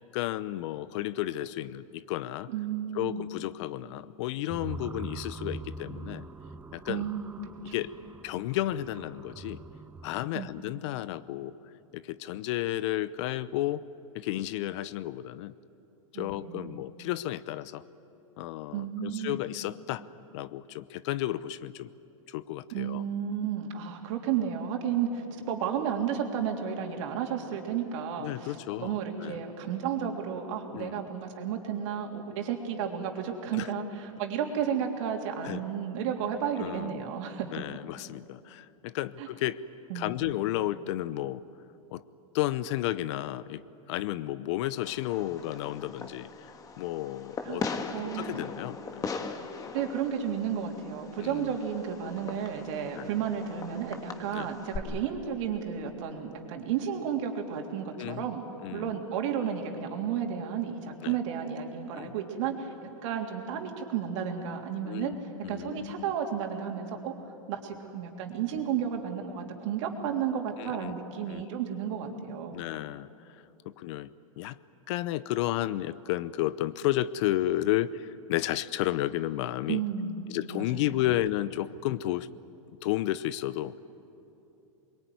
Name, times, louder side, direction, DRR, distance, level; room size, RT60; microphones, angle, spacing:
voice 1, 0.1-2.5 2.9-6.2 6.7-7.0 7.7-7.9 8.2-9.6 10.0-11.5 11.9-13.8 14.1-15.5 16.1-17.8 18.4-20.1 20.3-21.9 22.3-23.0 28.2-29.4 30.7-31.1 33.5-33.7 35.4-35.6 36.6-37.0 37.5-39.6 39.9-41.4 41.9-42.0 42.3-43.6 43.9-47.7 48.0-49.1 51.2-51.6 52.9-53.1 54.3-54.5 54.8-55.0 58.0-58.3 58.6-59.0 61.0-61.2 61.9-62.1 64.8-66.0 70.6-70.9 71.3-71.4 72.5-73.1 73.3-74.1 74.4-74.6 74.9-79.8 80.3-82.4 82.8-83.8, left 14 dB, 55° left, 17 dB, 0.7 m, -32 dB
voice 2, 2.5-3.2 6.9-7.4 7.6-7.7 10.3-10.5 16.1-16.8 18.7-19.4 22.7-37.5 39.2-39.3 39.9-40.3 47.4-47.7 47.9-48.4 49.7-58.4 58.7-62.7 63.0-67.1 67.5-72.7 79.7-80.9, right 8 dB, 60° right, 2 dB, 3.4 m, -32 dB
sound 1, 4.5-10.3, right 3 dB, 10° right, 0.9 m, -43 dB
Fireworks, 44.8-54.8, left 4 dB, 20° left, 1.6 m, -40 dB
23.5 x 22.5 x 9.5 m, 2.9 s
hypercardioid pair, 125°, 18 cm